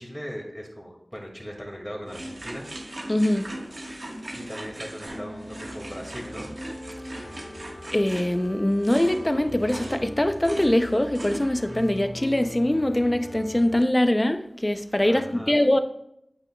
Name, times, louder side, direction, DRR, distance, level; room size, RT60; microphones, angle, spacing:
voice 1, 0.0-2.7 4.3-6.6 15.0-15.6, equal, 5° left, 2.1 m, -38 dB
sound 1, 2.1-11.8, right 1 dB, 70° right, 1.4 m, -39 dB
voice 2, 3.1-3.6 7.9-15.8, left 1 dB, 25° left, 0.5 m, -23 dB
sound 2, 5.1-13.8, left 1 dB, 55° left, 2.4 m, -41 dB
8.7 x 8.5 x 2.3 m
wide cardioid pair, 55°, 0 cm